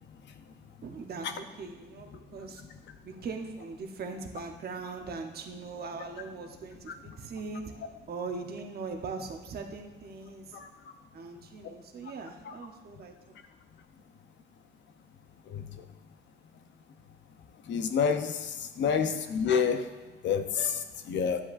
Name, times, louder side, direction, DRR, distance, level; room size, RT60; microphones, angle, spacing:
voice 1, 0.8-2.6 3.0-7.6 8.1-10.6 11.1-13.4, right 4 dB, 50° right, 4 dB, 0.9 m, -40 dB
voice 2, 17.7-18.3 18.8-19.8 20.2-20.7 21.1-21.4, left 6 dB, 65° left, 8 dB, 0.7 m, -26 dB
9.9 x 7.8 x 2.5 m, 1.1 s
cardioid pair, 90°, 20 cm